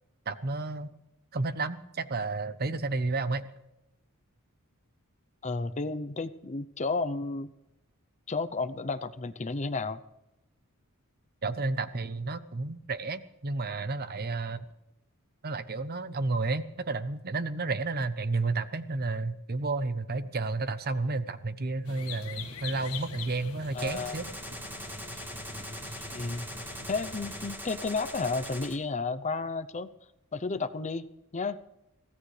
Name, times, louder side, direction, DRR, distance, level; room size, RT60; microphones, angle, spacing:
voice 1, 0.3-0.9 1.3-3.5 11.4-14.7 15.4-24.3, right 3 dB, 45° right, 12 dB, 0.9 m, -31 dB
voice 2, 5.4-7.5 8.3-10.0 23.7-24.2 26.1-26.5 26.9-29.9 30.3-31.1 31.3-31.6, left 3 dB, 30° left, 11 dB, 0.7 m, -32 dB
sound 1, 21.8-27.5, left 4 dB, 75° left, 1.8 m, -43 dB
Gunshot gunfire, 23.8-28.8, equal, 10° right, 1.6 m, -41 dB
23.5 x 16.5 x 3.3 m, 0.90 s
head